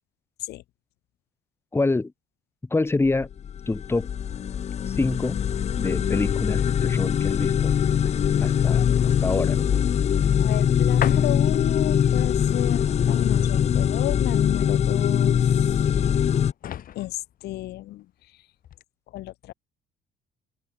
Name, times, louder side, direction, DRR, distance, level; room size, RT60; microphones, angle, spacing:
voice 1, 1.7-2.1 2.7-3.3 3.7-4.1 4.9-5.4 5.8-7.7 8.4-9.7, left 3 dB, 15° left, 2.0 m, -26 dB
sound 1, 3.1-16.5, left 8 dB, 40° left, 1.0 m, -22 dB
sound 2, 4.3-18.3 18.6-18.8, left 10 dB, 55° left, 3.8 m, -41 dB
voice 2, 10.3-16.0 16.9-18.1 18.3-18.4 19.1-19.5, left 16 dB, 75° left, 1.5 m, -33 dB
open air
cardioid pair, 110°, 17 cm